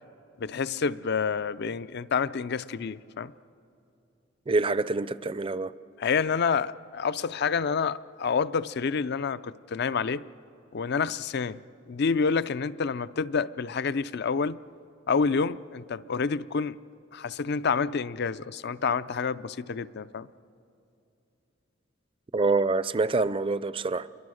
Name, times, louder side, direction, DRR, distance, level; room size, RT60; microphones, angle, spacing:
voice 1, 0.4-3.3 6.0-10.2 10.7-11.6 11.9-14.6 15.1-16.8 17.1-20.3, left 5 dB, 60° left, 0.5 m, -28 dB
voice 2, 4.5-5.7 22.3-24.1, right 3 dB, 30° right, 0.5 m, -26 dB
28.5 x 23.0 x 6.4 m
head